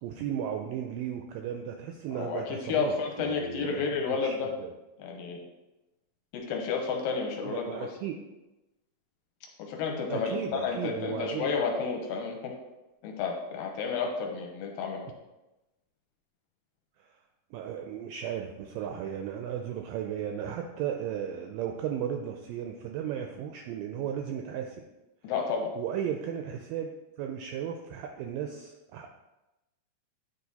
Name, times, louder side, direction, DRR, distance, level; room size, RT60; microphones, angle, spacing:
voice 1, 0.0-4.3 4.6-4.7 7.4-8.1 10.1-11.6 17.0-17.1 17.5-24.8 25.8-26.9 27.2-29.1, right 9 dB, 85° right, 4 dB, 2.0 m, -35 dB
voice 2, 2.1-4.5 5.0-5.4 6.3-7.9 9.6-12.5 13.0-15.0 25.2-25.7, left 5 dB, 75° left, 1 dB, 2.4 m, -31 dB
9.5 x 3.4 x 4.0 m, 1.0 s
omnidirectional pair, 4.4 m